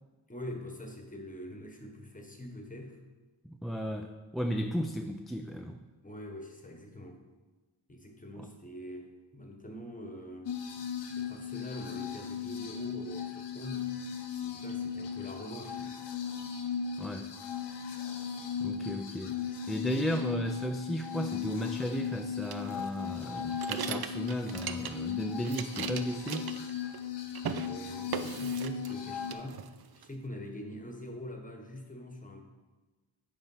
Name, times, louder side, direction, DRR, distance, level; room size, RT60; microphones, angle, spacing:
voice 1, 0.3-3.0 6.0-7.2 7.9-10.9 11.1-13.9 14.4-15.9 27.6-29.6 29.9-32.4, left 1 dB, 20° left, 3 dB, 1.1 m, -44 dB
voice 2, 3.4-5.8 8.4-8.5 17.0-17.3 18.6-19.4 19.7-26.5, equal, ahead, 4 dB, 0.3 m, -35 dB
sound 1, 10.5-29.3, left 7 dB, 75° left, 0.8 m, -37 dB
sound 2, 22.5-25.1 25.4-27.1 27.3-27.7 28.1-29.0 29.3-30.1, right 8 dB, 60° right, 0.5 m, -38 dB
9.2 x 3.6 x 5.5 m, 1.3 s
wide cardioid pair, 80°, 42 cm